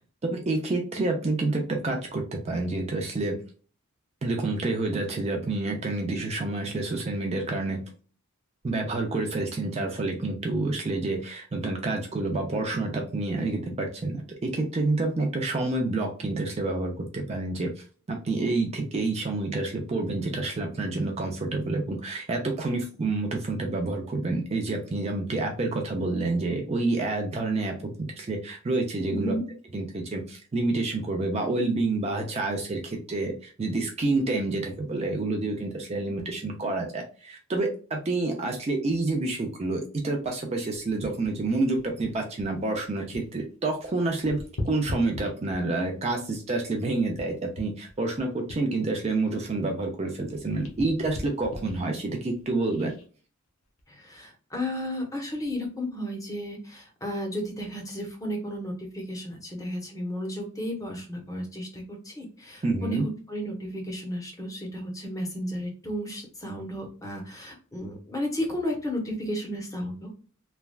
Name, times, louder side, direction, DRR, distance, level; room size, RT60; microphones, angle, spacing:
voice 1, 0.2-3.4 4.2-7.8 8.6-29.4 29.7-52.9 62.6-63.1, right 2 dB, 30° right, 2 dB, 0.4 m, -28 dB
voice 2, 29.0-29.4 53.9-70.1, equal, 15° left, 1 dB, 0.7 m, -33 dB
sound 1, 40.7-43.5 43.7-45.9 46.4-50.0 50.3-53.1 53.6-53.8, left 1 dB, 70° left, 0.8 m, -40 dB
3.2 x 2.2 x 2.2 m, 0.39 s
head